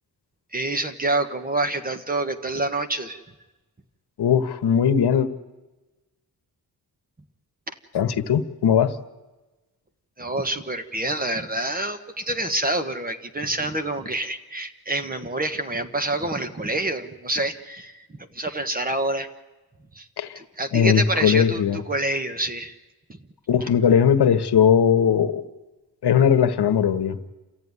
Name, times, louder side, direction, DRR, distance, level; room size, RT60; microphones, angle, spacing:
voice 1, 0.5-3.2 7.7-7.8 10.2-18.1 18.3-19.3 19.9-20.1 20.4-22.7, right 2 dB, 20° right, 8 dB, 1.3 m, -27 dB
voice 2, 4.2-5.3 7.9-9.0 20.2-20.4 20.7-21.8 23.5-25.4 26.0-27.2, left 8 dB, 90° left, 10 dB, 1.3 m, -19 dB
28.5 x 14.5 x 9.6 m, 1.1 s
wide cardioid pair, 150°, 39 cm